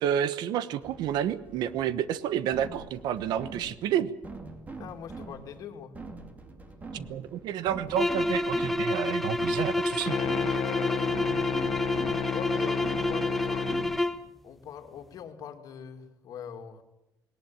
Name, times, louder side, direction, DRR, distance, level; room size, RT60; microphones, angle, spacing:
voice 1, 0.0-4.1 6.9-10.2, right 10 dB, 75° right, 16 dB, 1.1 m, -30 dB
sound 1, 0.8-14.3, right 3 dB, 20° right, 2.5 m, -44 dB
voice 2, 4.8-5.9 10.5-11.2 12.3-13.7 14.4-16.8, left 8 dB, 55° left, 6 dB, 2.3 m, -42 dB
sound 2, 7.9-14.3, left 1 dB, ahead, 0.8 m, -29 dB
sound 3, 10.1-14.0, left 10 dB, 80° left, 1.1 m, -32 dB
19.5 x 18.5 x 9.1 m, 0.93 s
cardioid pair, 170°, 7 cm